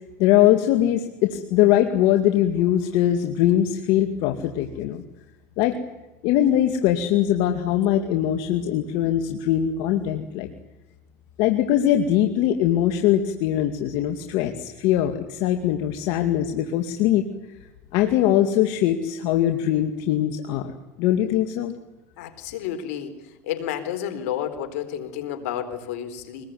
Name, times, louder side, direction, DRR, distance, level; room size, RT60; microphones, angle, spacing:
voice 1, 0.2-5.0 5.6-5.8 6.2-10.5 11.4-17.2 17.9-21.7, left 11 dB, 70° left, 5 dB, 2.3 m, -21 dB
voice 2, 22.2-23.2 23.4-26.4, left 10 dB, 85° left, 8 dB, 4.1 m, -30 dB
24.0 x 21.0 x 9.4 m, 1.0 s
supercardioid pair, 110°, 8 cm